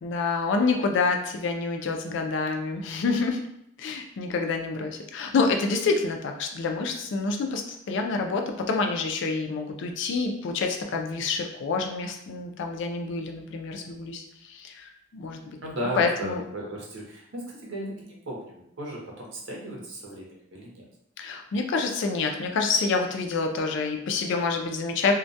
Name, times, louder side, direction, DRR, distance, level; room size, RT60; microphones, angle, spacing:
voice 1, 0.0-3.4 3.8-15.4 16.0-16.4 21.2-25.1, left 4 dB, 65° left, 4 dB, 0.3 m, -27 dB
voice 2, 15.6-20.9, equal, 80° right, -2 dB, 0.7 m, -35 dB
2.2 x 2.1 x 2.6 m, 0.75 s
head